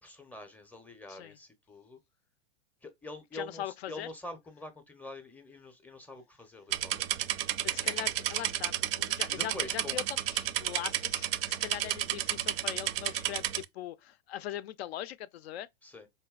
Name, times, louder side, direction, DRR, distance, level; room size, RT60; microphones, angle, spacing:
voice 1, 0.0-2.0 2.8-7.1 9.3-10.0 11.7-12.0 15.8-16.1, left 2 dB, 5° left, 0.5 m, -45 dB
voice 2, 3.3-4.1 7.6-15.7, left 12 dB, 75° left, 0.5 m, -41 dB
sound 1, 6.7-13.6, right 13 dB, 65° right, 0.4 m, -32 dB
4.1 x 2.6 x 2.2 m
hypercardioid pair, 125°, 32 cm